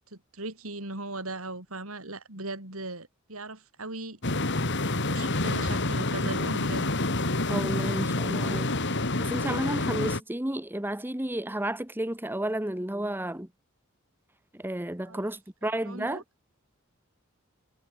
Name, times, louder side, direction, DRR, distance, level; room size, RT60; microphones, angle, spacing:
voice 1, 0.1-4.2 5.0-6.9 15.0-15.3 15.6-16.2, right 2 dB, 80° right, 6.9 m, -38 dB
sound 1, 4.2-10.2, left 2 dB, 55° left, 3.4 m, -28 dB
voice 2, 7.5-8.7 9.2-13.5 14.5-16.2, right 1 dB, 10° right, 1.4 m, -32 dB
head